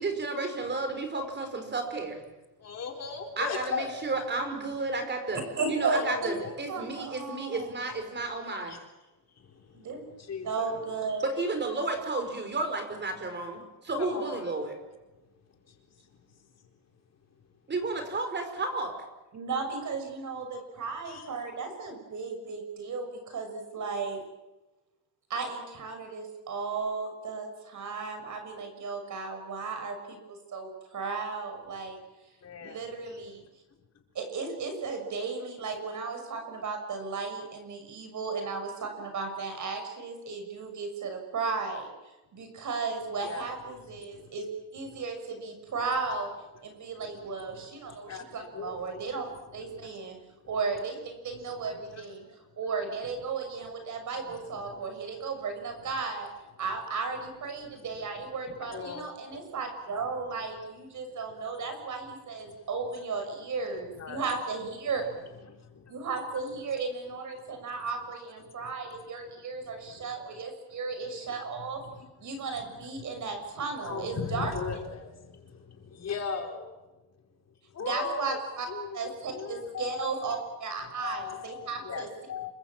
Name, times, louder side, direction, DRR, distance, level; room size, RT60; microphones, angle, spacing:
voice 1, 0.0-2.2 3.4-5.4 5.7-8.8 11.2-14.7 17.7-18.9, right 3 dB, 25° right, 6 dB, 5.1 m, -32 dB
voice 2, 2.6-3.9 5.9-6.5 8.7-8.8 9.4-9.5 10.2-10.8 14.0-14.5 21.1-21.3 32.4-32.9 43.2-43.5 44.1-44.3 47.0-47.1 47.5-48.9 49.7-49.9 51.9-52.0 54.2-54.4 54.6-54.8 58.7-59.4 62.5-62.6 64.0-64.2 65.5-66.0 73.8-76.7 77.7-78.4 78.7-80.4 81.0-82.5, left 5 dB, 40° left, 4 dB, 4.4 m, -38 dB
voice 3, 5.6-6.3 6.7-7.7 9.7-10.0 10.4-11.2 19.3-24.2 25.3-32.0 32.6-33.4 34.1-41.9 42.3-44.5 44.7-46.3 46.6-49.3 49.5-50.2 50.5-52.2 52.6-56.3 56.6-65.0 65.9-71.8 72.2-74.8 77.8-78.7 78.9-82.1, right 4 dB, 50° right, 5 dB, 6.5 m, -35 dB
28.0 x 24.5 x 7.5 m, 1.1 s
cardioid pair, 155°, 39 cm